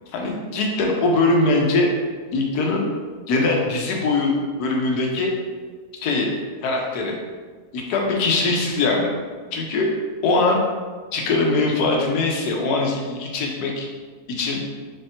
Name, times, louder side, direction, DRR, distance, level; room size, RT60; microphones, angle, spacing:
voice 1, 0.1-1.9 2.3-2.9 3.3-5.3 6.0-6.3 6.6-7.1 7.7-9.1 9.5-9.9 10.2-10.6 11.1-13.9 14.4-14.6, left 3 dB, 85° left, 0 dB, 1.2 m, -21 dB
3.5 x 3.2 x 2.8 m, 1.5 s
omnidirectional pair, 1.6 m